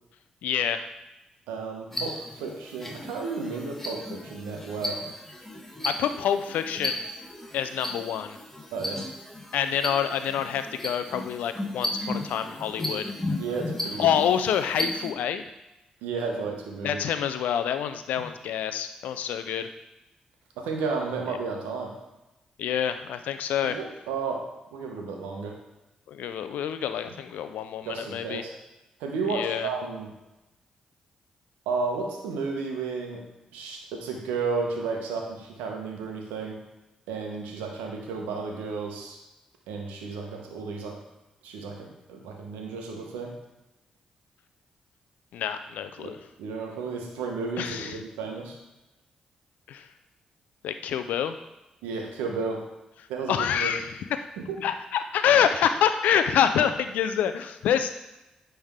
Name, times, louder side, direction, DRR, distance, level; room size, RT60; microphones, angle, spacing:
voice 1, 0.4-0.9 5.8-7.1 7.5-8.4 9.5-13.1 14.0-15.4 16.8-19.7 22.6-23.8 26.1-28.4 29.3-29.7 45.3-46.2 47.6-48.0 49.7-49.9 50.6-51.4 53.3-53.9 54.6-57.9, left 9 dB, 80° left, 9 dB, 0.4 m, -27 dB
voice 2, 1.5-5.0 8.7-9.0 13.4-14.1 16.0-17.0 18.2-18.3 20.6-22.0 23.6-25.6 27.8-28.5 29.0-30.1 31.7-36.6 37.1-39.2 39.7-41.0 41.4-43.4 46.0-48.6 51.8-52.7 53.1-53.8 54.4-54.6, right 4 dB, 90° right, 2 dB, 0.9 m, -33 dB
sound 1, 1.9-15.1, left 1 dB, 10° left, 1.4 m, -35 dB
9.7 x 3.4 x 3.6 m, 0.98 s
supercardioid pair, 45°, 3 cm